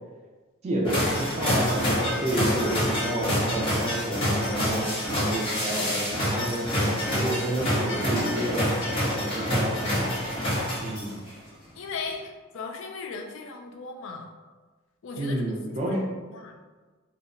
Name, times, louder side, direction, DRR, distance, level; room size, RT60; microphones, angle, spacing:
voice 1, 0.6-6.7 7.1-10.2 10.8-11.2 15.2-16.0, right 1 dB, 30° right, -2 dB, 0.4 m, -30 dB
sound 1, 0.8-11.3, equal, 25° left, 0.6 m, -27 dB
voice 2, 11.8-14.3 15.0-15.4 15.8-16.0 16.3-16.6, left 4 dB, 60° left, 3 dB, 0.3 m, -37 dB
2.7 x 2.0 x 2.5 m, 1.4 s
head